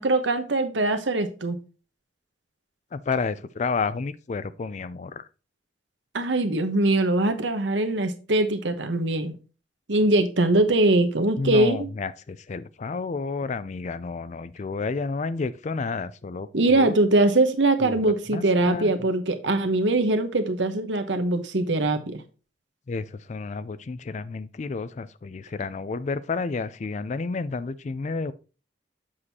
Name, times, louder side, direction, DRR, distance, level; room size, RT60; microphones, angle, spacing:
voice 1, 0.0-1.6 6.1-9.3 9.9-11.9 16.5-22.2, right 2 dB, 85° right, 1.0 m, -22 dB
voice 2, 2.9-5.2 11.4-17.0 17.8-18.9 22.9-28.3, left 4 dB, 40° left, 0.4 m, -31 dB
7.4 x 6.3 x 2.8 m
head